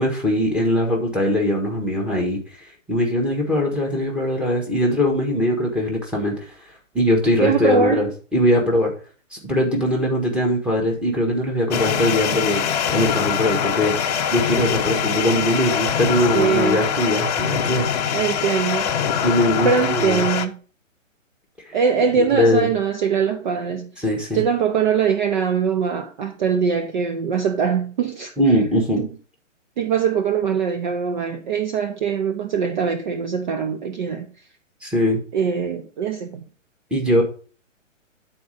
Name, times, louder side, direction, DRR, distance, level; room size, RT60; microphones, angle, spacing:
voice 1, 0.0-2.4 2.9-6.4 6.9-8.9 9.3-12.6 12.9-13.9 14.3-17.9 19.2-20.2 22.2-22.7 24.0-24.4 28.4-29.0 34.8-35.2 36.9-37.2, left 1 dB, 5° right, 1.4 m, -21 dB
voice 2, 7.4-8.1 16.3-16.8 18.1-18.9 19.1-19.3 19.6-20.6 21.7-23.9 24.3-28.3 29.0-29.1 29.8-34.3 35.3-36.4, right 6 dB, 35° right, 0.6 m, -22 dB
sound 1, 11.7-20.5, left 8 dB, 30° left, 0.7 m, -23 dB
9.1 x 4.3 x 5.0 m
hypercardioid pair, 140°, 39 cm